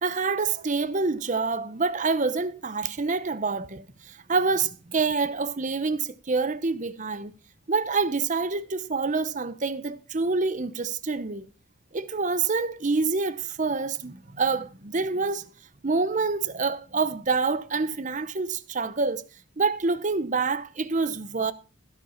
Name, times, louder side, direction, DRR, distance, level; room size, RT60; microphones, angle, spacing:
voice 1, 0.0-7.3 7.7-11.5 11.9-15.5 15.8-19.2 19.6-21.5, right 4 dB, 35° right, 0.7 m, -27 dB
16.0 x 5.5 x 5.7 m
head